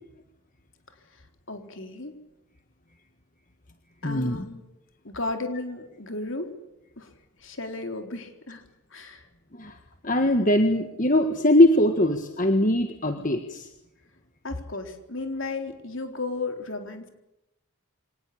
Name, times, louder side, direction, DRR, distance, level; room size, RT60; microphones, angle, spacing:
voice 1, 1.5-2.1 4.0-4.6 5.0-6.5 7.0-7.1 7.4-8.6 8.9-9.3 14.4-17.1, left 3 dB, 60° left, 5 dB, 4.0 m, -34 dB
voice 2, 4.0-4.4 9.6-9.8 10.0-13.7, left 1 dB, 35° left, 6 dB, 1.6 m, -21 dB
25.0 x 19.5 x 8.7 m, 0.88 s
head